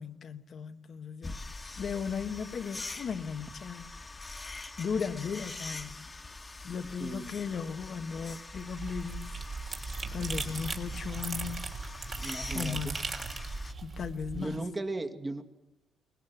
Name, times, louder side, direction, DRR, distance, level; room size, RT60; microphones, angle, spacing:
voice 1, 0.0-1.5 1.8-3.9 4.8-6.1 6.6-9.4 9.7-11.8 12.5-13.0 13.8-14.6, left 6 dB, 55° left, 1.4 m, -36 dB
sound 1, 1.2-13.7, left 3 dB, 25° left, 1.8 m, -44 dB
voice 2, 7.0-7.3 12.2-12.9 14.3-15.4, right 2 dB, 25° right, 2.2 m, -36 dB
sound 2, 8.5-14.6, right 4 dB, 45° right, 3.5 m, -38 dB
24.0 x 20.0 x 7.4 m
cardioid pair, 90°, 0 cm